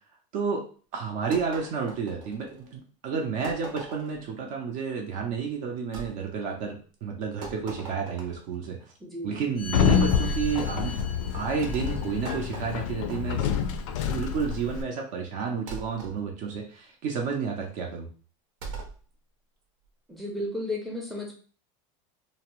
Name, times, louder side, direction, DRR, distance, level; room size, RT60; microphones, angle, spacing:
voice 1, 0.3-0.6 0.9-8.8 9.2-11.0 11.3-13.6 14.1-18.1, right 6 dB, 45° right, 1 dB, 0.5 m, -31 dB
sound 1, 1.3-2.7 3.4-4.3 5.9-6.1 7.4-8.5 10.2-10.6 11.6-13.7 15.7-16.2 18.6-19.0, right 3 dB, 80° right, 0.8 m, -40 dB
voice 2, 9.0-9.4 20.1-21.4, left 1 dB, ahead, -1 dB, 0.5 m, -34 dB
Sliding door, 9.6-14.8, left 7 dB, 70° left, 0.4 m, -27 dB
2.6 x 2.0 x 2.9 m, 0.40 s
supercardioid pair, 160°, 17 cm